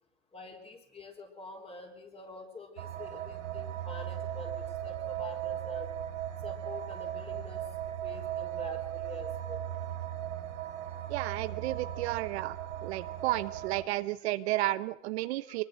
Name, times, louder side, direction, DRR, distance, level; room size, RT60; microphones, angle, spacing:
voice 1, 0.3-5.9 6.4-7.6 8.0-9.6, left 2 dB, 15° left, 4 dB, 4.2 m, -46 dB
sound 1, 2.8-13.8, right 11 dB, 85° right, 3.0 m, -37 dB
voice 2, 11.1-12.6 12.8-15.6, right 17 dB, 55° right, 12 dB, 1.0 m, -32 dB
23.5 x 21.5 x 6.5 m, 0.74 s
supercardioid pair, 140°, 38 cm